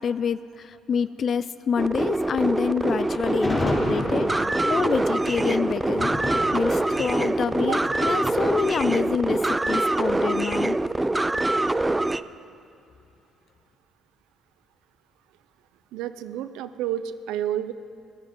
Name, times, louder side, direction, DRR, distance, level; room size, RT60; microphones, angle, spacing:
voice 1, 0.0-6.1 6.5-10.8, left 7 dB, 55° left, 15 dB, 0.3 m, -27 dB
sound 1, 1.8-12.2, right 2 dB, 15° right, 0.4 m, -24 dB
Thunder, 3.0-10.2, left 2 dB, 20° left, 3.8 m, -33 dB
voice 2, 15.9-17.7, right 11 dB, 85° right, 13 dB, 0.5 m, -30 dB
16.5 x 12.0 x 5.3 m, 2.6 s
supercardioid pair, 65°, 0 cm